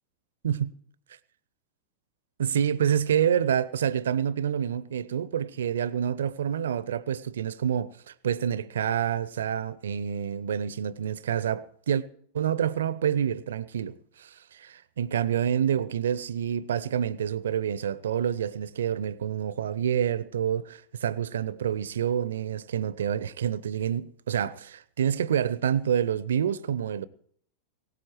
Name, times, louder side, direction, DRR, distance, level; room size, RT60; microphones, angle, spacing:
voice 1, 2.4-12.0 12.3-27.1, right 9 dB, 65° right, 0.6 m, -28 dB
20.0 x 17.5 x 3.1 m
figure-of-eight pair, 90°, 0 cm